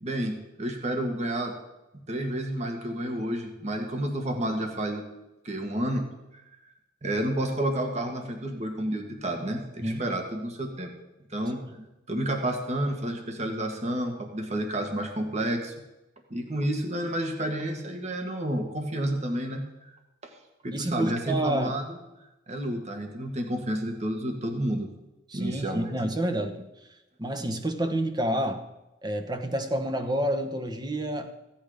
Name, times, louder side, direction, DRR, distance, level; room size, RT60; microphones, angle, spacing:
voice 1, 0.0-1.5 2.1-5.0 5.4-6.0 7.0-10.9 11.3-11.6 12.1-15.7 16.3-19.6 20.2-20.3 20.6-21.8 22.5-24.9 25.3-25.9, right 1 dB, 40° right, 4 dB, 1.7 m, -30 dB
voice 2, 20.7-21.8 25.3-26.7 27.2-28.6 29.0-31.3, right 1 dB, 25° right, 7 dB, 1.1 m, -29 dB
15.5 x 8.8 x 5.1 m, 0.97 s
head